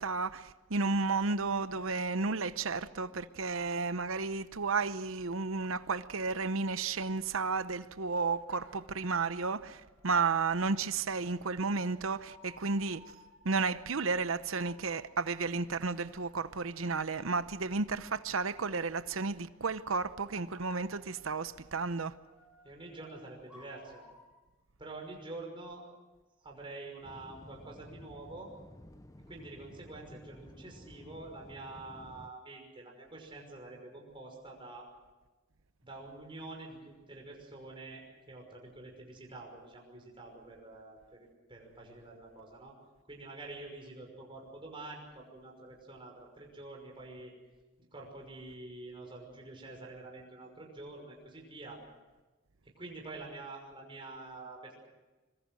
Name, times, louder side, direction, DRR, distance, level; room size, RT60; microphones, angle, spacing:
voice 1, 0.0-13.0 13.4-22.1, right 4 dB, 75° right, 0.9 m, -32 dB
sound 1, 8.2-24.4, left 1 dB, 5° right, 7.1 m, -62 dB
voice 2, 22.6-24.0 24.8-25.8 26.4-28.5 29.3-34.9 35.8-42.8 43.1-47.3 47.9-51.8 52.6-54.7, right 2 dB, 25° right, 5.7 m, -47 dB
sound 2, 27.0-32.3, left 1 dB, 15° left, 0.8 m, -53 dB
25.0 x 23.0 x 6.4 m
head